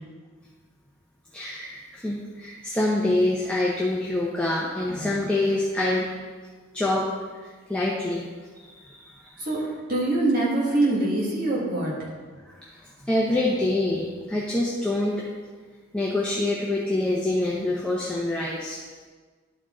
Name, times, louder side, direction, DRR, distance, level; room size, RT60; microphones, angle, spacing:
voice 1, 1.3-6.1 6.7-7.1 7.4-8.2 8.5-9.5 12.4-15.2 15.9-18.8, left 2 dB, 5° left, -5 dB, 0.7 m, -26 dB
voice 2, 9.9-11.9, right 2 dB, 45° right, -5 dB, 1.7 m, -23 dB
11.5 x 4.4 x 3.8 m, 1.5 s
head